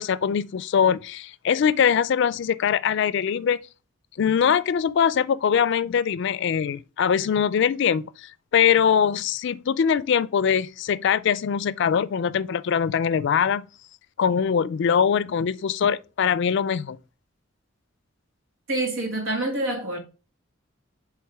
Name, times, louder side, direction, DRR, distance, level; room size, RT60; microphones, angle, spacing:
voice 1, 0.0-3.6 4.2-13.7 14.2-17.0, left 7 dB, 60° left, 0.4 m, -22 dB
voice 2, 18.7-20.0, right 2 dB, 80° right, 1.8 m, -26 dB
7.9 x 3.5 x 3.4 m
head